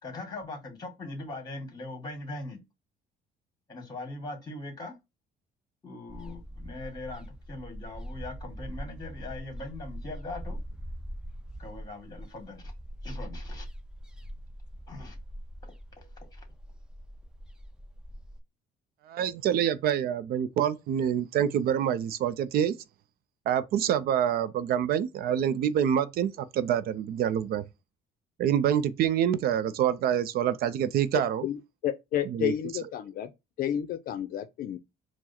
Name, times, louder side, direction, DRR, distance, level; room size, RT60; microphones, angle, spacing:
voice 1, 0.0-2.6 3.7-4.9 5.8-10.6 11.6-12.7 13.0-13.7 14.9-15.2 16.0-16.4, left 2 dB, 20° left, 1.9 m, -41 dB
sound 1, 6.1-18.4, equal, 5° right, 0.5 m, -42 dB
voice 2, 19.1-22.7 23.5-27.6 28.4-31.5 32.3-32.5, right 9 dB, 65° right, 0.4 m, -26 dB
voice 3, 31.4-33.3 33.6-34.8, left 10 dB, 60° left, 0.5 m, -31 dB
4.6 x 2.0 x 4.2 m
cardioid pair, 110°, 17 cm